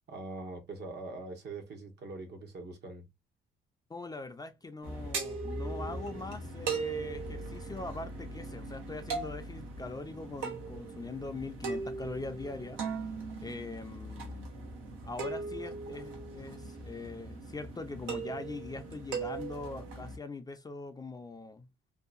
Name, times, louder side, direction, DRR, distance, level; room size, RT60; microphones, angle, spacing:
voice 1, 0.1-3.1, right 3 dB, 60° right, 1.0 m, -43 dB
voice 2, 3.9-12.8 13.4-14.5 15.1-21.7, left 3 dB, 20° left, 0.4 m, -42 dB
sound 1, 4.8-20.2, right 4 dB, 85° right, 0.9 m, -39 dB
2.7 x 2.2 x 2.4 m
cardioid pair, 90°, 20 cm